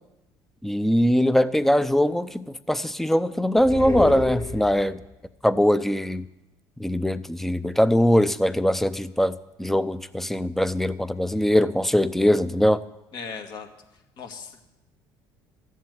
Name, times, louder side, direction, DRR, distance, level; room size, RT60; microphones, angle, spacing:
voice 1, 0.6-5.0 5.4-6.2 6.8-12.8, equal, 5° left, 14 dB, 0.6 m, -21 dB
sound 1, 3.5-5.1, left 4 dB, 35° left, 2.9 m, -30 dB
voice 2, 13.1-13.7 14.2-14.6, left 5 dB, 60° left, 4 dB, 2.1 m, -37 dB
14.0 x 7.5 x 9.4 m, 0.97 s
supercardioid pair, 95°, 8 cm